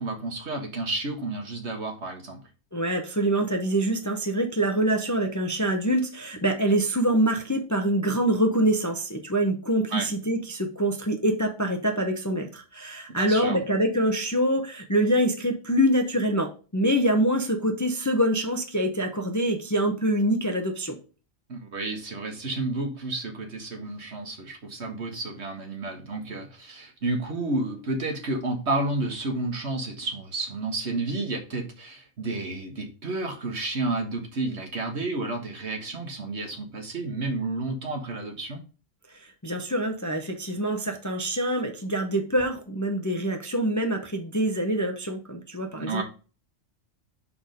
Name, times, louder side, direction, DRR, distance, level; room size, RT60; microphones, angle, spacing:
voice 1, 0.0-2.4 9.9-10.1 13.2-13.6 21.5-38.6 45.8-46.0, right 2 dB, 60° right, 4 dB, 1.7 m, -31 dB
voice 2, 2.7-21.0 39.4-46.0, right 1 dB, 15° left, 3 dB, 0.7 m, -25 dB
6.0 x 4.4 x 5.2 m, 0.34 s
omnidirectional pair, 1.3 m